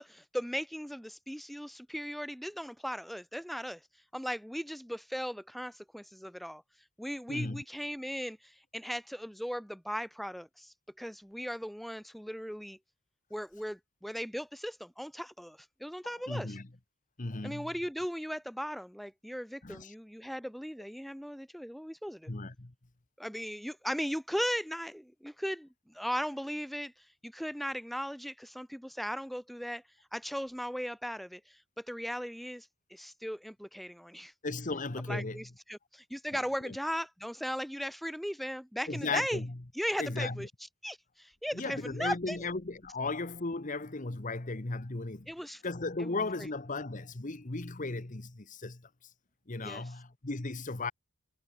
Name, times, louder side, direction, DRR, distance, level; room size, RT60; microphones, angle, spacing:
voice 1, 0.0-3.8 4.1-6.6 7.0-12.8 13.3-16.6 17.4-22.3 23.2-29.8 30.1-34.3 35.1-39.4 39.7-40.5 40.8-42.4 45.3-45.6 46.0-46.2 49.6-49.9, equal, ahead, 1.2 m, -37 dB
voice 2, 7.3-7.6 16.3-16.7 17.2-17.7 19.6-19.9 22.3-22.7 34.4-35.4 36.6-36.8 38.9-39.5 40.0-40.4 41.5-45.3 45.6-48.8 49.5-50.9, left 3 dB, 35° left, 1.1 m, -36 dB
head